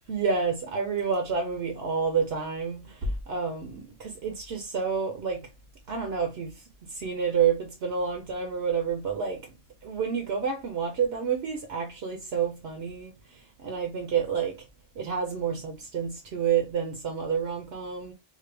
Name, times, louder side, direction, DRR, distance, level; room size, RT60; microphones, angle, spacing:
voice 1, 0.1-5.5 5.9-9.5 9.8-14.7 15.0-18.1, right 6 dB, 75° right, 0.9 m, -29 dB
3.3 x 2.1 x 3.2 m
omnidirectional pair, 1.0 m